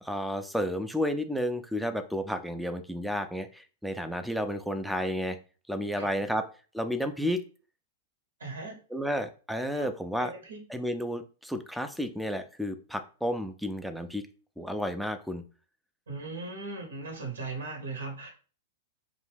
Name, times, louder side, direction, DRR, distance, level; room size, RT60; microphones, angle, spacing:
voice 1, 0.0-5.4 5.7-6.4 6.7-7.4 8.9-10.3 10.7-14.2 14.6-15.4, equal, ahead, 8 dB, 0.3 m, -31 dB
voice 2, 8.4-8.8 9.7-9.9 10.2-10.6 16.1-18.3, right 3 dB, 85° right, 2 dB, 0.9 m, -38 dB
2.5 x 2.2 x 3.3 m, 0.36 s
hypercardioid pair, 115°, 0 cm